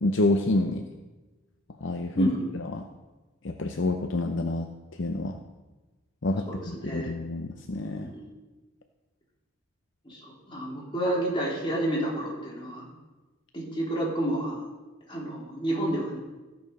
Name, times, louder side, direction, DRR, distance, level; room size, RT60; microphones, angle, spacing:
voice 1, 0.0-0.8 1.8-2.9 3.4-4.7 5.0-5.4 6.2-8.1, left 2 dB, 60° left, 5 dB, 0.7 m, -28 dB
voice 2, 2.1-2.5 6.5-7.1 8.0-8.2 10.0-12.8 13.5-14.6 15.1-16.2, right 1 dB, 25° left, -4 dB, 3.3 m, -30 dB
15.0 x 6.7 x 5.4 m, 1.2 s
head